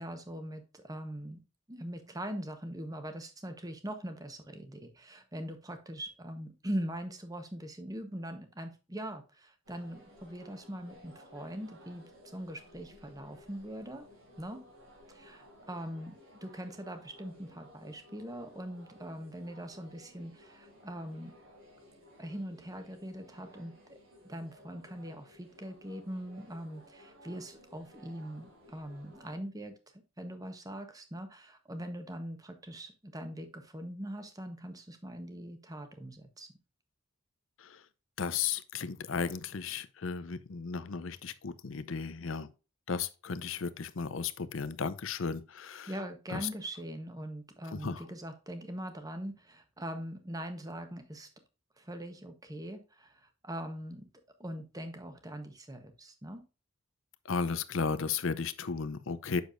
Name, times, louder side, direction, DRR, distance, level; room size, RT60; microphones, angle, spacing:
voice 1, 0.0-1.4 1.7-14.0 14.4-14.6 15.1-21.3 22.2-24.0 24.2-29.7 30.2-36.5 45.9-51.3 51.8-54.1 54.4-56.4, equal, 15° right, 1.0 m, -42 dB
sound 1, 9.6-29.4, equal, 75° right, 4.5 m, -57 dB
voice 2, 38.2-42.5 42.9-45.9 46.3-46.4 47.7-48.0 57.3-59.4, left 5 dB, 70° left, 0.6 m, -34 dB
8.1 x 6.6 x 2.5 m
head